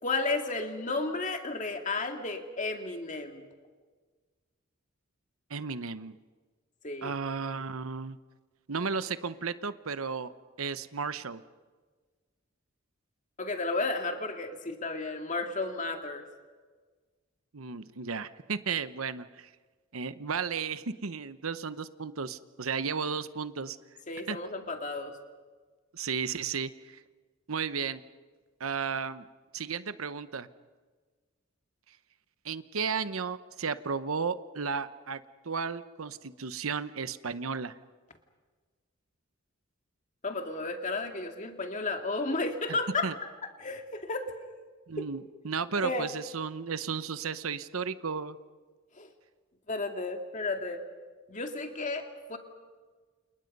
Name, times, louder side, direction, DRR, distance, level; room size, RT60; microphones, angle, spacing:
voice 1, 0.0-3.5 6.8-7.1 13.4-16.3 24.1-25.2 40.2-43.1 43.6-44.3 45.0-45.1 45.8-46.1 49.0-49.1 49.7-50.8 51.3-52.4, left 3 dB, 35° left, 5 dB, 2.2 m, -33 dB
voice 2, 5.5-6.2 7.0-8.2 8.7-10.3 10.6-11.4 17.5-19.5 19.9-23.8 24.3-24.4 25.9-27.0 27.5-28.0 28.6-29.3 29.5-30.5 32.4-37.8 42.7-42.8 43.0-43.1 44.9-48.4, right 5 dB, 85° right, 13 dB, 0.9 m, -34 dB
29.0 x 28.5 x 5.4 m, 1.4 s
head